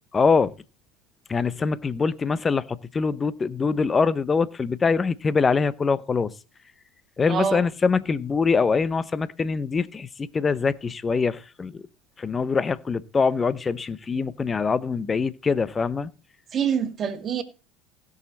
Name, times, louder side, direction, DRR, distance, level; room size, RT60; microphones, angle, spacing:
voice 1, 0.1-0.5 1.3-6.3 7.2-11.8 12.2-16.1, left 5 dB, 25° left, 0.8 m, -24 dB
voice 2, 7.3-7.6 16.5-17.4, right 7 dB, 40° right, 1.9 m, -25 dB
16.5 x 6.6 x 4.1 m
hypercardioid pair, 80°, 0 cm